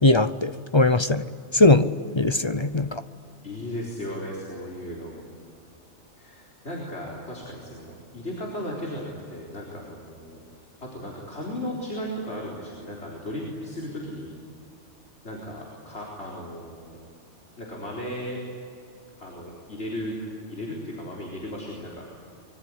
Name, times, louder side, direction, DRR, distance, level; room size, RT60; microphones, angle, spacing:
voice 1, 0.0-1.2 1.5-1.9 2.2-3.0, left 2 dB, 30° left, 0.6 m, -20 dB
voice 2, 3.4-5.3 6.2-10.4 10.8-14.3 15.2-17.0 17.6-18.4 19.2-20.1 20.5-22.1, equal, 60° left, 4.5 m, -35 dB
25.0 x 23.5 x 9.9 m
omnidirectional pair, 1.3 m